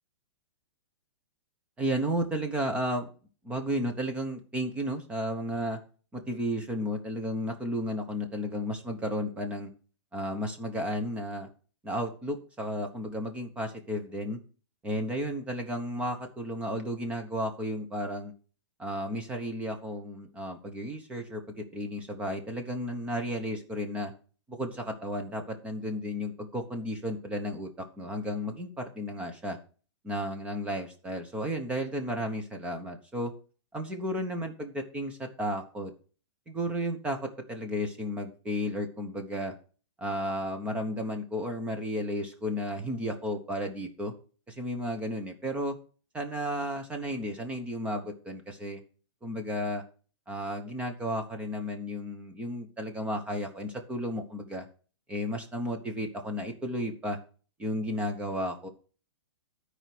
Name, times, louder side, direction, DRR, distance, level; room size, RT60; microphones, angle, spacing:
voice 1, 1.8-3.1 3.4-5.8 6.1-9.7 10.1-11.5 11.8-14.4 14.8-18.3 18.8-24.1 24.5-29.6 30.0-33.3 33.7-35.9 36.5-39.5 40.0-44.1 44.5-45.8 46.1-48.8 49.2-49.8 50.3-54.7 55.1-57.2 57.6-58.7, equal, 10° right, 5 dB, 1.1 m, -33 dB
12.5 x 4.8 x 6.1 m, 0.39 s
hypercardioid pair, 165°, 15 cm